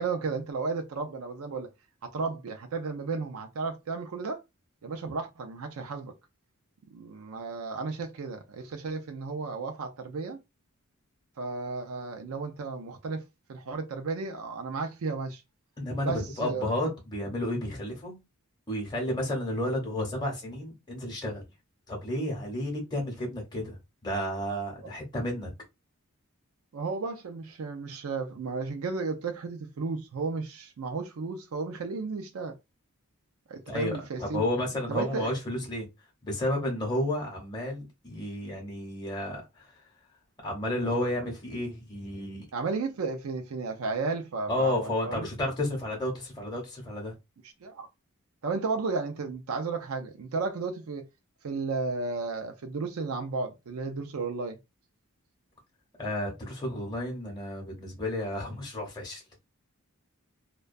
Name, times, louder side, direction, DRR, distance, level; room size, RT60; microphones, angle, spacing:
voice 1, 0.0-1.7 2.0-4.4 4.8-6.1 6.9-10.4 11.4-15.4 16.0-16.7 24.8-24.9 26.7-32.6 33.5-34.5 34.9-35.3 42.5-45.3 47.4-47.9 48.4-51.0 51.4-54.6, right 4 dB, 70° right, 0.4 m, -33 dB
voice 2, 15.8-18.2 18.7-21.4 21.9-23.8 24.0-25.5 33.7-35.9 36.2-39.7 40.4-42.4 44.5-47.1 56.0-59.2, left 1 dB, 20° left, 0.8 m, -32 dB
2.3 x 2.2 x 2.5 m
head